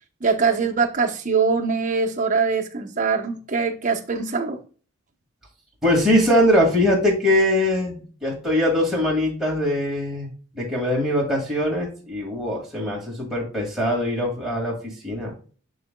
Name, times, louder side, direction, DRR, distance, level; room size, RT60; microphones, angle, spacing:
voice 1, 0.2-4.6, right 5 dB, 35° right, 0.9 m, -22 dB
voice 2, 5.8-15.3, left 1 dB, ahead, 2.0 m, -22 dB
11.5 x 4.0 x 2.2 m
head